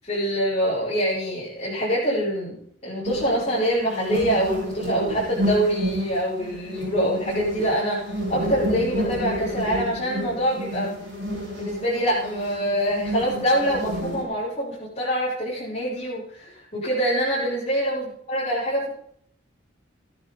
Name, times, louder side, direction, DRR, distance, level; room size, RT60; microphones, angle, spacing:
voice 1, 0.0-11.0 11.6-18.9, equal, 35° left, -11 dB, 7.9 m, -25 dB
sound 1, 3.0-14.2, equal, 55° right, 7.1 m, -30 dB
17.5 x 12.5 x 4.3 m, 0.68 s
head